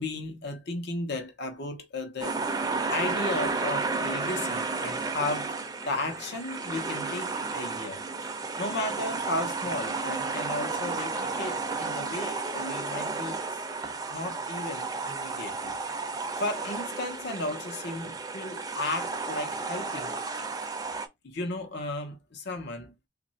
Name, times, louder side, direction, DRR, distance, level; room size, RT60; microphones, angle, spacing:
voice 1, 0.0-2.4 2.9-5.6 5.8-8.0 8.6-13.4 14.1-15.8 16.4-20.1 21.2-23.1, left 2 dB, 60° left, 0.9 m, -34 dB
sound 1, 2.2-21.1, right 4 dB, 20° right, 0.5 m, -32 dB
3.1 x 2.5 x 4.1 m
head